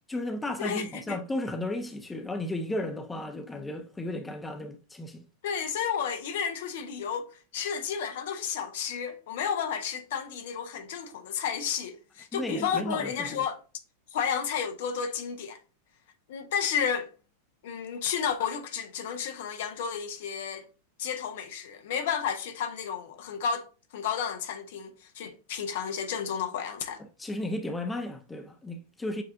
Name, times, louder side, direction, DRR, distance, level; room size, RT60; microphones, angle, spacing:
voice 1, 0.1-5.2 12.3-13.4 27.2-29.2, left 1 dB, 10° left, 0.5 m, -34 dB
voice 2, 0.6-1.2 5.4-13.6 14.1-15.6 16.3-17.1 17.6-20.7 21.0-23.7 23.9-27.0, left 7 dB, 55° left, 0.6 m, -32 dB
7.1 x 2.4 x 2.6 m
figure-of-eight pair, 90°, 0 cm